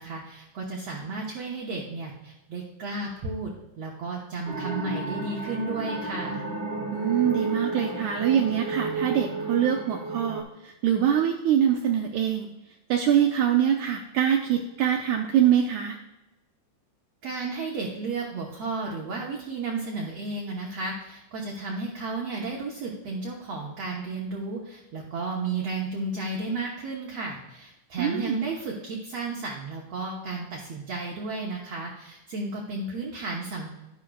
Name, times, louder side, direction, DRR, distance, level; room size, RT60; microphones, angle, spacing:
voice 1, 0.0-3.5 3.8-6.5 17.2-33.7, right 3 dB, 60° right, -2 dB, 1.9 m, -33 dB
sound 1, 4.5-10.4, right 2 dB, 40° right, 1.8 m, -32 dB
voice 2, 6.9-12.5 12.9-16.0 28.0-28.4, right 9 dB, 75° right, 2 dB, 1.8 m, -24 dB
11.5 x 11.0 x 2.4 m, 0.97 s
omnidirectional pair, 3.9 m